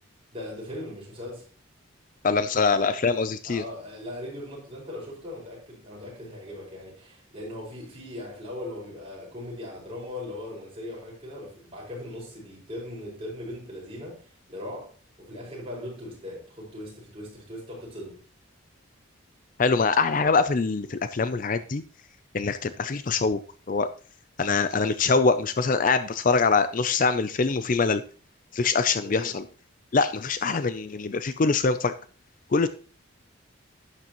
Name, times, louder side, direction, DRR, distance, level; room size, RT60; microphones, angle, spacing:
voice 1, 0.3-1.4 3.4-18.2 29.0-29.4, left 1 dB, 30° right, 5.4 m, -39 dB
voice 2, 2.2-3.6 19.6-21.8 22.3-23.4 23.7-23.9 24.4-28.0 28.5-29.4 29.9-31.9 32.5-32.7, left 4 dB, 40° left, 0.4 m, -23 dB
11.5 x 9.6 x 3.0 m
head